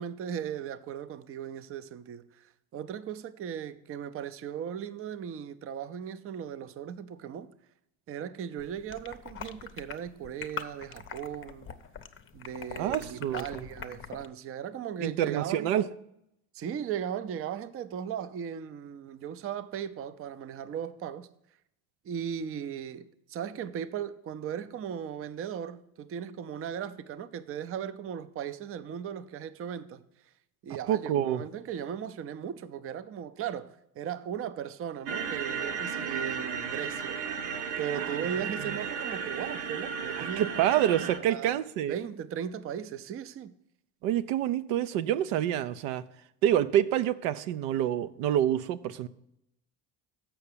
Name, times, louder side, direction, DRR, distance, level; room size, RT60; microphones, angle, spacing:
voice 1, 0.0-7.5 8.1-11.7 12.3-15.8 16.5-21.3 22.0-30.0 30.6-37.2 37.8-41.6 41.9-43.5, right 9 dB, 30° right, 0.5 m, -37 dB
sound 1, 8.6-14.3, left 7 dB, 30° left, 0.6 m, -43 dB
voice 2, 12.8-13.6 15.0-15.9 30.9-31.4 40.2-41.9 44.0-46.0 46.4-49.1, right 11 dB, 85° right, 0.6 m, -27 dB
sound 2, 35.1-41.2, right 6 dB, 65° right, 1.0 m, -34 dB
7.0 x 5.8 x 6.7 m
supercardioid pair, 95°, 44 cm